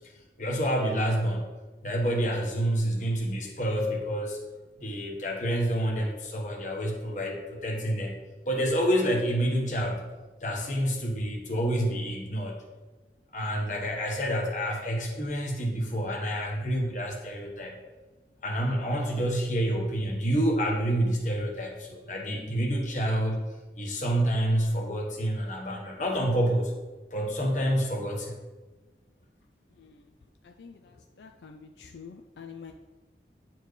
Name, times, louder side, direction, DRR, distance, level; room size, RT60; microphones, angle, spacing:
voice 1, 0.4-1.4 1.8-4.4 4.8-8.2 8.5-10.0 10.4-12.6 13.3-17.7 18.4-23.4 23.8-26.7 27.1-28.4, equal, 45° left, 0 dB, 1.2 m, -28 dB
voice 2, 29.7-30.0 30.4-32.7, left 6 dB, 80° left, 4 dB, 0.4 m, -47 dB
9.6 x 4.5 x 3.2 m, 1.2 s
head